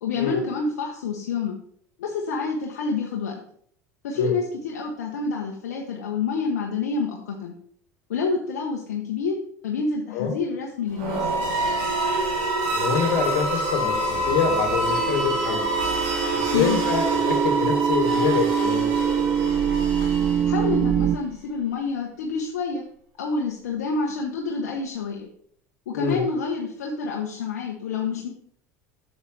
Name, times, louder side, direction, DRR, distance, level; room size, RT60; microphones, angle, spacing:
voice 1, 0.0-1.5 2.0-3.3 4.0-7.5 8.1-9.3 9.6-11.3 16.5-16.8 20.4-22.8 23.2-25.3 25.9-28.3, left 4 dB, 80° left, 0 dB, 1.0 m, -28 dB
sound 1, 10.9-20.8, right 2 dB, 70° right, 2.5 m, -26 dB
voice 2, 12.7-15.7 16.3-18.9 25.9-26.2, left 6 dB, 65° left, 5 dB, 1.8 m, -25 dB
sound 2, 13.3-21.2, right 8 dB, 30° right, 0.5 m, -25 dB
8.2 x 7.2 x 3.3 m, 0.65 s
hypercardioid pair, 80°, 9 cm